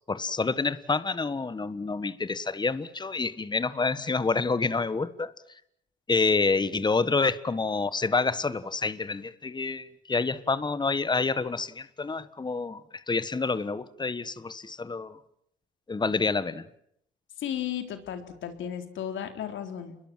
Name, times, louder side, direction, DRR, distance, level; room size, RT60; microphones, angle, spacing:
voice 1, 0.1-5.3 6.1-15.2 15.9-16.7, left 4 dB, 20° left, 1.4 m, -28 dB
voice 2, 17.4-20.0, left 9 dB, 75° left, 3.9 m, -34 dB
29.5 x 22.0 x 7.6 m
cardioid pair, 90°, 20 cm